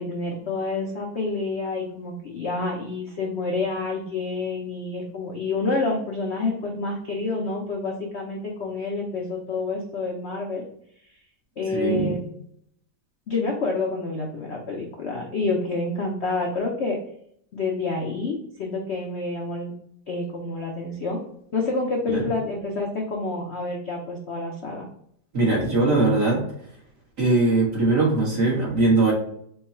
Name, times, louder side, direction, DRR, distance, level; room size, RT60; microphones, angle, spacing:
voice 1, 0.0-10.6 11.6-12.2 13.3-17.0 17.5-19.7 20.1-21.2 21.5-24.9, left 3 dB, 75° left, -1 dB, 0.6 m, -28 dB
voice 2, 11.7-12.2 22.1-22.2 25.3-26.4 27.2-29.1, right 2 dB, 45° right, -4 dB, 1.7 m, -21 dB
4.5 x 2.3 x 4.2 m, 0.68 s
omnidirectional pair, 2.1 m